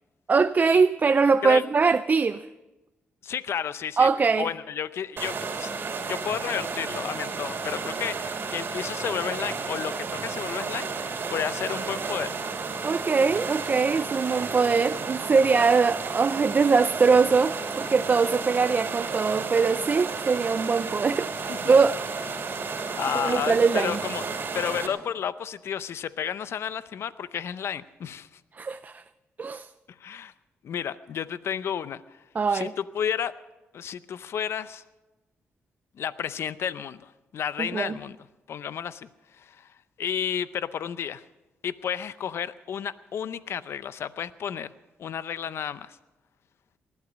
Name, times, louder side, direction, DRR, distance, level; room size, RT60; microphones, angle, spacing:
voice 1, 0.3-2.5 4.0-4.5 12.8-21.3 21.7-22.0 23.2-24.0 28.6-29.0 29.4-29.7 32.4-32.7 37.6-37.9, right 5 dB, 40° right, 0.4 m, -22 dB
voice 2, 3.2-4.1 4.4-5.7 6.1-12.3 12.7-12.8 21.5-21.7 22.6-28.3 29.9-30.3 30.6-32.0 32.5-33.3 33.7-34.8 36.0-38.2 38.5-39.1 39.4-39.7 40.0-41.2 41.6-44.7 45.0-46.0, left 8 dB, 70° left, 0.6 m, -32 dB
sound 1, 5.2-24.9, right 4 dB, 55° right, 2.8 m, -32 dB
19.5 x 12.0 x 6.2 m
cardioid pair, 80°, 5 cm